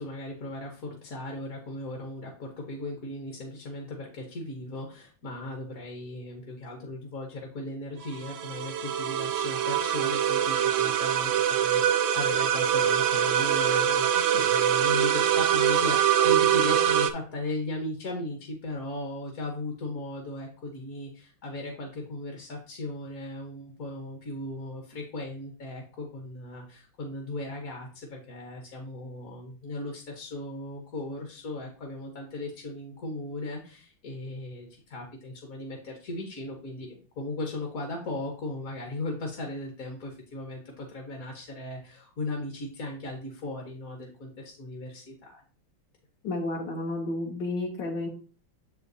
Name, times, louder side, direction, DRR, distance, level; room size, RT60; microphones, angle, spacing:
voice 1, 0.0-11.3 11.6-45.4, left 1 dB, 50° left, 1 dB, 1.4 m, -37 dB
sound 1, 8.0-17.1, right 10 dB, 85° right, 1.4 m, -24 dB
voice 2, 46.2-48.1, left 2 dB, 70° left, -1 dB, 1.6 m, -31 dB
7.1 x 5.0 x 2.7 m, 0.39 s
omnidirectional pair, 2.1 m